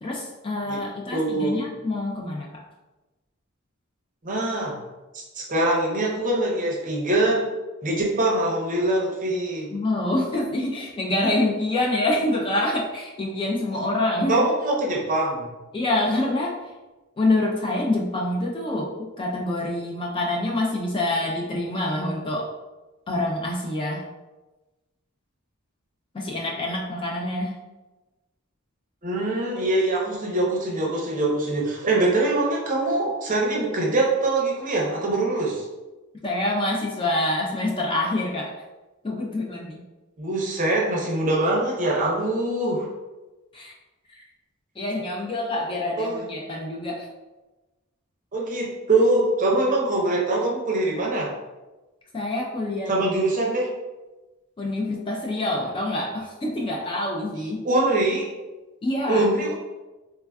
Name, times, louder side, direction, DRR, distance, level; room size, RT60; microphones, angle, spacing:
voice 1, 0.0-2.6 9.7-14.4 15.7-16.6 17.2-22.5 23.1-24.0 26.1-27.6 36.2-38.5 39.0-39.8 43.5-43.7 44.1-44.3 44.8-47.1 52.1-53.0 54.6-57.6 58.8-59.3, left 1 dB, 25° left, -1 dB, 0.3 m, -26 dB
voice 2, 1.1-1.6 4.2-4.8 5.3-7.4 7.8-9.7 13.7-13.8 14.3-15.5 29.0-35.6 40.2-42.9 46.0-46.2 48.3-51.3 52.9-53.7 57.6-58.3 59.1-59.5, right 2 dB, 35° right, -2 dB, 0.6 m, -23 dB
3.2 x 2.3 x 2.2 m, 1.1 s
head